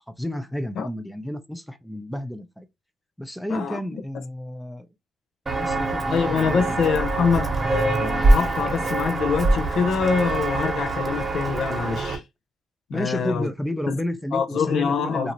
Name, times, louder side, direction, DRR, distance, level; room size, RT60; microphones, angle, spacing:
voice 1, 0.2-2.7 3.2-4.9 5.5-7.2 12.9-15.3, equal, 5° left, 0.6 m, -31 dB
voice 2, 3.5-3.8 6.1-12.2 12.9-13.5 13.9-14.0 14.3-15.3, left 6 dB, 70° left, 0.5 m, -25 dB
Walk footsteps, 5.5-12.2, right 2 dB, 25° right, 1.1 m, -24 dB
2.7 x 2.6 x 3.0 m
cardioid pair, 90°, 0 cm